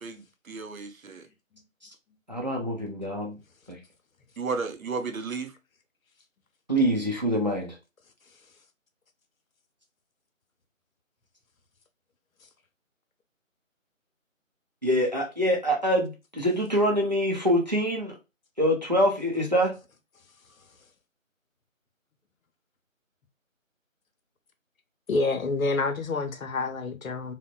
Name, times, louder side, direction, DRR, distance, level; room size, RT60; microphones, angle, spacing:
voice 1, 0.0-1.2 4.4-5.5, right 4 dB, 85° right, 0.7 m, -33 dB
voice 2, 2.3-3.4 3.7-3.8 6.7-7.8 14.8-18.2 18.6-19.7, equal, 35° right, 0.5 m, -25 dB
voice 3, 25.1-27.3, left 3 dB, 80° left, 0.7 m, -28 dB
2.9 x 2.1 x 2.2 m
figure-of-eight pair, 165°, 41 cm